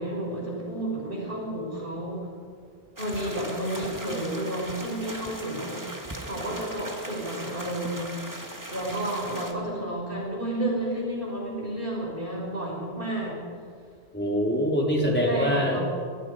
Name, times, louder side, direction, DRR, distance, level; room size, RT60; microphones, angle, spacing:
voice 1, 0.0-2.2 3.0-5.9 6.2-8.1 8.7-13.4 15.3-15.8, right 1 dB, 60° right, -3 dB, 6.6 m, -31 dB
sound 1, 3.0-9.5, right 1 dB, 20° right, 1.9 m, -39 dB
voice 2, 14.1-15.8, equal, 10° left, -3 dB, 4.1 m, -24 dB
26.5 x 20.0 x 5.2 m, 2.1 s
omnidirectional pair, 1.1 m